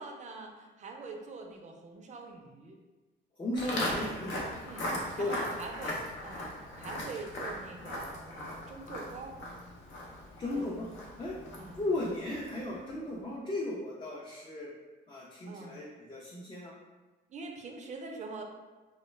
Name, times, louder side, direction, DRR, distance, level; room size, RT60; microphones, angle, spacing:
voice 1, 0.0-2.8 4.6-4.9 5.2-9.4 10.5-10.9 11.6-11.8 15.5-15.8 17.3-18.4, right 3 dB, 35° right, 2 dB, 0.4 m, -44 dB
voice 2, 3.4-4.4 5.2-5.5 10.4-10.9 11.2-11.4 11.7-14.7 15.1-16.7, left 1 dB, 25° left, -5 dB, 0.4 m, -35 dB
Walk footsteps, 3.6-12.8, left 1 dB, 70° left, 0.6 m, -39 dB
2.2 x 2.1 x 3.1 m, 1.2 s
cardioid pair, 90°, 20 cm